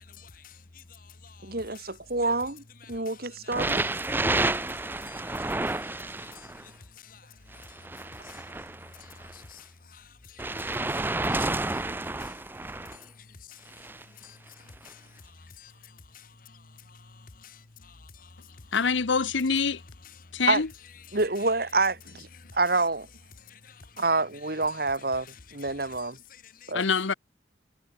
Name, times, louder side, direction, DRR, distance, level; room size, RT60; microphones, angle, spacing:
voice 1, 0.0-1.5 4.1-6.7 7.0-7.2 8.2-8.4 9.0-11.5 12.2-12.3 13.3-13.6 14.2-14.4 14.8-15.0 15.6-15.7 16.1-16.6 16.9-18.3 23.5-23.8 26.6-26.7, left 6 dB, 45° left, 1.1 m, -51 dB
voice 2, 1.4-3.8 20.5-20.6 21.1-23.1 24.0-26.2 26.7-26.8, right 3 dB, 50° right, 2.2 m, -27 dB
sound 1, 3.5-6.6 7.5-9.4 10.4-13.0 13.7-14.0 14.9-15.0, right 2 dB, 10° right, 0.5 m, -30 dB
voice 3, 18.7-19.8 20.3-20.7 26.7-27.1, left 5 dB, 80° left, 0.9 m, -25 dB
head